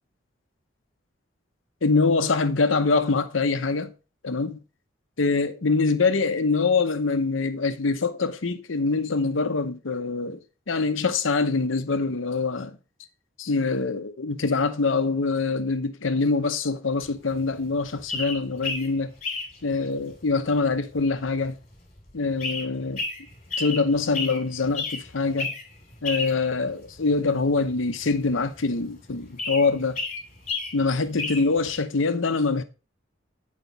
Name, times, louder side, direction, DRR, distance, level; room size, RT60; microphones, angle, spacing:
voice 1, 1.8-3.9 4.2-4.6 5.2-12.8 13.4-19.1 19.6-21.5 22.1-23.0 23.6-25.5 26.0-30.0 30.7-32.6, left 4 dB, 85° left, 0.8 m, -24 dB
sound 1, 17.0-31.8, left 3 dB, 35° left, 2.6 m, -34 dB
9.2 x 5.2 x 3.9 m
head